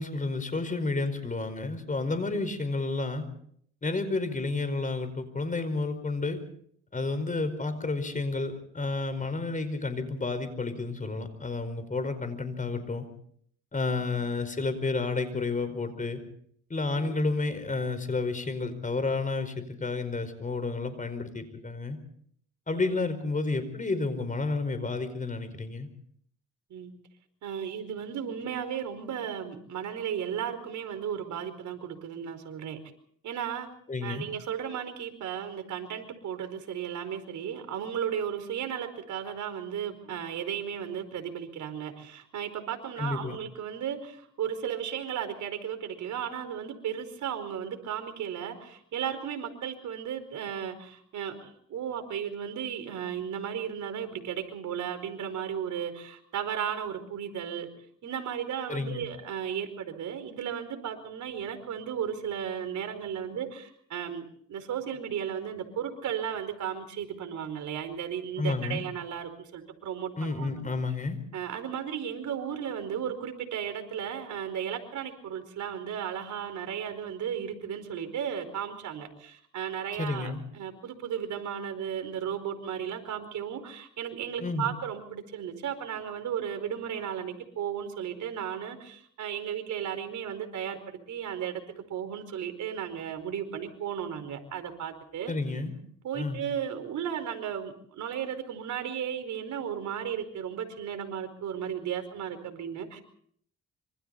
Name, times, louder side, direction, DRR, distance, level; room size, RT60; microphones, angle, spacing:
voice 1, 0.0-3.3 3.8-6.4 6.9-13.0 13.7-16.2 16.7-22.0 22.7-25.9 33.9-34.3 43.0-43.4 58.7-59.0 68.4-68.8 70.2-71.2 80.0-80.4 84.4-84.7 95.3-95.8 96.1-96.4, left 3 dB, 25° left, 10 dB, 4.9 m, -31 dB
voice 2, 27.4-32.8 33.2-33.7 34.0-57.7 58.0-70.7 71.3-95.3 96.0-103.0, right 8 dB, 75° right, 7 dB, 4.8 m, -35 dB
26.5 x 25.5 x 4.2 m, 0.62 s
cardioid pair, 90°, 30 cm